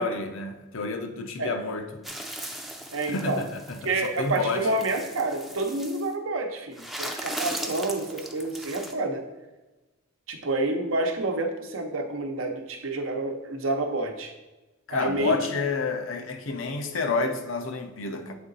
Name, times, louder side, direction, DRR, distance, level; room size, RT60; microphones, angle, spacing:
voice 1, 0.0-2.0 3.1-4.7 14.9-18.3, left 3 dB, 75° left, 0.6 m, -29 dB
sound 1, 2.0-6.1 6.7-8.9, right 1 dB, ahead, 0.4 m, -38 dB
voice 2, 2.9-3.4 3.8-9.2 10.3-14.3 14.9-15.3, right 2 dB, 80° right, 0.8 m, -28 dB
7.6 x 3.7 x 4.0 m
head